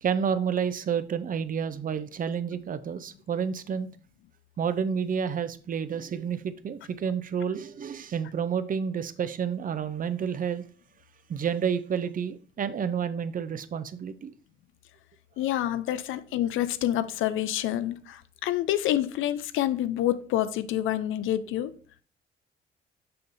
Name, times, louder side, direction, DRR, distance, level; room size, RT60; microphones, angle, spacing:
voice 1, 0.0-3.9 4.6-10.6 11.3-14.3, right 7 dB, 45° right, 0.6 m, -30 dB
voice 2, 15.4-21.7, left 12 dB, 85° left, 0.5 m, -27 dB
6.7 x 5.4 x 2.6 m
cardioid pair, 90°, 20 cm